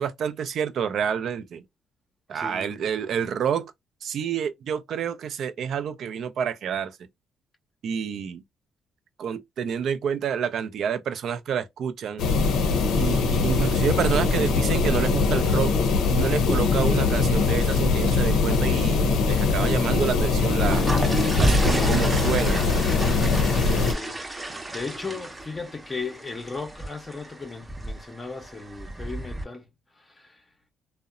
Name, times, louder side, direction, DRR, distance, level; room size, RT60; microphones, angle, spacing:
voice 1, 0.0-1.6 2.3-3.7 4.0-6.9 7.8-8.4 9.2-12.3 13.0-15.7 16.1-20.8 21.4-22.7, right 7 dB, 70° right, 0.4 m, -28 dB
voice 2, 2.3-2.8 23.9-30.4, left 4 dB, 25° left, 0.6 m, -37 dB
sound 1, 12.2-23.9, left 4 dB, 85° left, 0.6 m, -22 dB
sound 2, 20.4-29.4, right 1 dB, 15° right, 0.6 m, -31 dB
2.7 x 2.0 x 2.4 m
cardioid pair, 90°, 0 cm